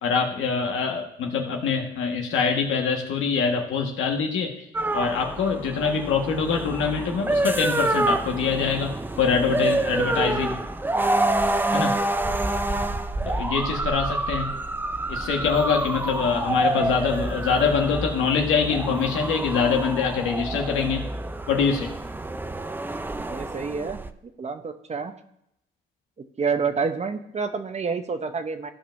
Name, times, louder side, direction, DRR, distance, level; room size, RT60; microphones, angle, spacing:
voice 1, 0.0-4.6 4.9-10.6 11.7-12.0 13.2-14.5 15.1-21.0 21.5-21.9, left 5 dB, 85° left, 2 dB, 1.5 m, -24 dB
sound 1, 4.7-24.1, right 2 dB, 10° right, 0.4 m, -27 dB
voice 2, 23.2-24.0 24.4-25.1 26.4-28.7, right 5 dB, 35° right, 8 dB, 0.8 m, -28 dB
14.5 x 5.3 x 2.6 m, 0.78 s
cardioid pair, 90°, 20 cm